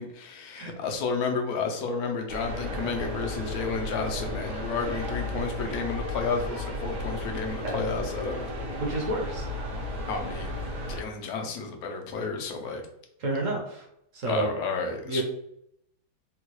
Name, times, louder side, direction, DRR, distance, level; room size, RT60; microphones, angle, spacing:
voice 1, 0.0-8.5 10.1-10.6 10.9-12.8 14.2-15.2, left 4 dB, 70° left, 4 dB, 1.1 m, -31 dB
sound 1, 2.3-11.0, left 1 dB, 75° right, 1.4 m, -34 dB
voice 2, 8.8-9.5 13.2-13.9 14.1-14.5 15.0-15.2, right 2 dB, 55° right, -1 dB, 1.0 m, -29 dB
3.7 x 2.3 x 2.9 m, 0.76 s
omnidirectional pair, 1.8 m